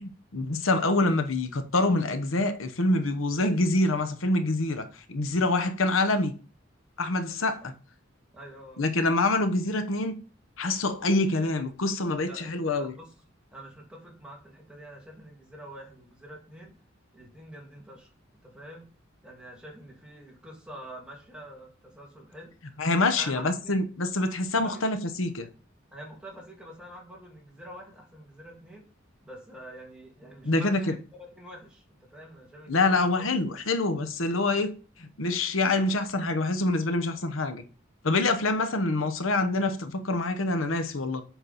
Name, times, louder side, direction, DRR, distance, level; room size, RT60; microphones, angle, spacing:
voice 1, 0.0-6.3 7.0-7.7 8.8-10.1 10.6-12.9 22.8-25.5 30.4-30.8 32.7-34.7 35.0-37.6 38.0-41.2, left 2 dB, 80° left, 0.9 m, -26 dB
voice 2, 8.3-8.9 12.2-12.5 12.8-13.1 13.5-16.8 17.1-18.1 18.4-18.9 19.2-22.5 23.1-23.8 24.6-24.7 25.9-28.8 29.2-33.3, equal, 5° right, 2.3 m, -46 dB
8.1 x 5.9 x 4.1 m
head